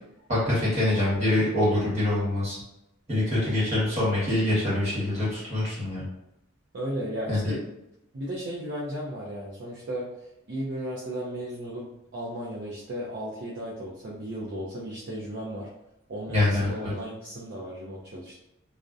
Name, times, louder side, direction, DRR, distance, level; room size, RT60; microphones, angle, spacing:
voice 1, 0.3-2.6 3.1-6.0 7.3-7.5 16.3-16.9, left 1 dB, 35° right, -8 dB, 1.1 m, -25 dB
voice 2, 6.7-7.6 8.1-10.1 10.5-15.7 16.1-18.4, equal, 50° right, -5 dB, 0.4 m, -35 dB
2.5 x 2.0 x 2.3 m, 0.86 s
head